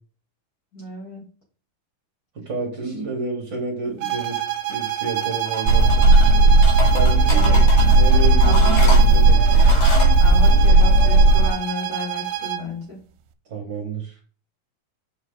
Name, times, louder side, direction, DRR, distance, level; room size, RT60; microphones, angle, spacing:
voice 1, 0.7-1.3 2.8-2.9 7.3-7.6 8.4-8.9 10.2-13.0, left 2 dB, 30° left, -3 dB, 2.3 m, -33 dB
voice 2, 2.4-4.4 4.7-6.1 6.9-7.6 7.9-9.6 13.5-14.1, right 3 dB, 40° right, 1 dB, 1.8 m, -30 dB
sound 1, 4.0-12.7, right 12 dB, 80° right, 2.3 m, -28 dB
sound 2, 5.5-6.3 6.6-8.0 8.4-10.1, left 2 dB, 85° left, 4.7 m, -30 dB
sound 3, 5.6-11.5, right 2 dB, 25° right, 1.8 m, -14 dB
7.2 x 5.6 x 3.9 m, 0.39 s
omnidirectional pair, 4.3 m